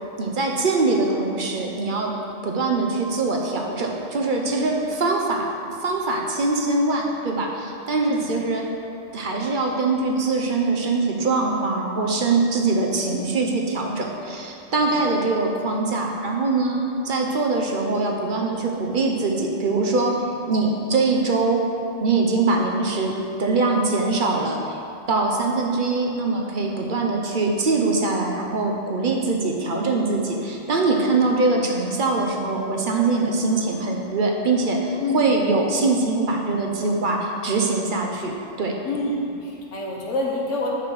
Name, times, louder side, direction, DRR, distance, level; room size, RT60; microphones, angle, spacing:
voice 1, 0.2-2.1 2.4-5.5 5.8-8.7 9.1-21.6 22.0-24.8 25.1-38.8, right 3 dB, 50° right, 1 dB, 0.7 m, -23 dB
voice 2, 14.7-15.1 26.7-27.0 31.0-31.2 35.0-35.4 38.8-40.7, left 2 dB, 65° left, -2 dB, 1.4 m, -28 dB
6.3 x 5.9 x 4.8 m, 2.6 s
omnidirectional pair, 1.3 m